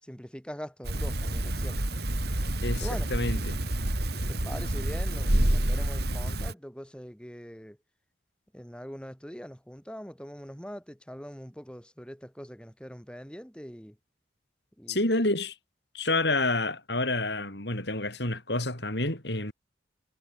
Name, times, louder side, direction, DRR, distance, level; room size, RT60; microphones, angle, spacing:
voice 1, 0.0-1.9 2.8-3.1 4.1-7.8 8.5-14.0 14.8-15.0, equal, 5° left, 4.2 m, -43 dB
sound 1, 0.8-6.5, right 1 dB, 55° right, 3.0 m, -28 dB
voice 2, 2.6-3.6 14.9-15.5 15.9-19.5, left 2 dB, 60° left, 7.0 m, -28 dB
head